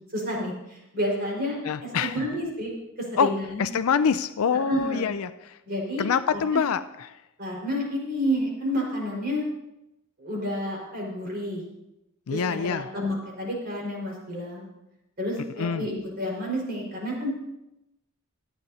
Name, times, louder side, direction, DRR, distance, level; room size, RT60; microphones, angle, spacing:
voice 1, 0.1-1.5 1.8-2.7 3.0-3.6 4.7-5.1 5.6-6.6 7.4-9.5 10.2-11.6 12.3-14.6 15.2-17.3, equal, 45° right, -3 dB, 4.8 m, -30 dB
voice 2, 1.7-2.1 3.2-3.3 3.6-5.3 6.0-6.8 12.3-12.8 15.6-15.8, left 6 dB, 70° left, 12 dB, 0.4 m, -25 dB
26.0 x 9.1 x 2.8 m, 0.89 s
head